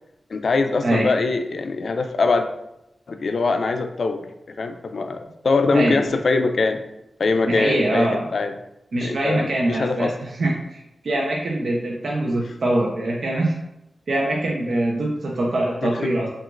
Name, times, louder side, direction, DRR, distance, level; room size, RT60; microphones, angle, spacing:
voice 1, 0.3-2.5 3.1-4.3 4.6-6.8 7.2-8.5 9.0-10.1 15.8-16.1, left 3 dB, 70° left, 7 dB, 0.3 m, -22 dB
voice 2, 0.8-1.1 5.7-6.0 7.5-8.3 8.9-13.5 14.1-16.3, right 1 dB, 80° right, -2 dB, 0.5 m, -23 dB
5.9 x 2.4 x 2.4 m, 0.87 s
wide cardioid pair, 95°, 0 cm